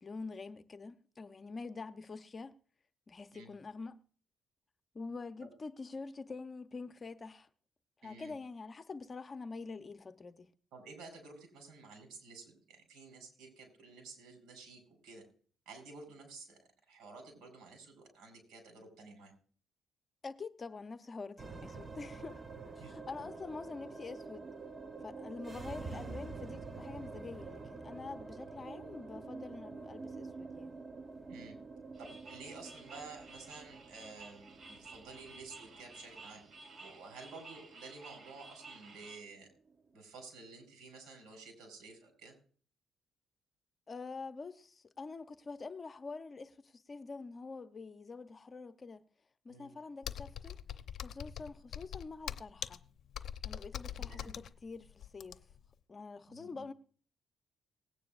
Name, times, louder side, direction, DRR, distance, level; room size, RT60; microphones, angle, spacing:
voice 1, 0.0-2.5 3.1-4.0 4.9-7.5 8.0-10.5 20.2-22.4 22.8-24.5 25.0-30.7 43.9-49.0 49.4-50.6 51.0-52.8 53.4-55.5 55.9-56.7, left 4 dB, 35° left, 0.9 m, -46 dB
voice 2, 8.0-8.4 10.7-15.2 15.6-19.3 22.8-22.9 25.9-26.2 31.3-31.6 32.0-36.4 36.8-39.5 39.9-42.3 49.5-49.8 53.9-54.4 56.3-56.6, right 3 dB, 85° right, 5.0 m, -52 dB
sound 1, 21.4-39.9, right 4 dB, 30° right, 0.9 m, -48 dB
sound 2, 31.9-39.2, right 3 dB, 50° right, 2.1 m, -54 dB
Computer keyboard, 50.0-55.7, left 9 dB, 65° left, 0.7 m, -43 dB
19.5 x 9.4 x 2.5 m
cardioid pair, 90°, 0 cm